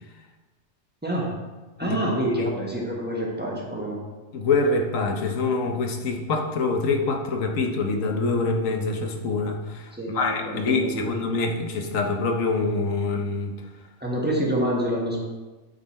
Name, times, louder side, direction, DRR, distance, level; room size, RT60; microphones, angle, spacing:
voice 1, 1.0-1.4 1.8-4.0 9.9-11.1 14.0-15.2, right 1 dB, 10° right, -3 dB, 1.1 m, -27 dB
voice 2, 1.8-2.5 4.3-13.6, left 3 dB, 70° left, 3 dB, 1.2 m, -25 dB
8.7 x 4.0 x 4.2 m, 1.2 s
omnidirectional pair, 1.4 m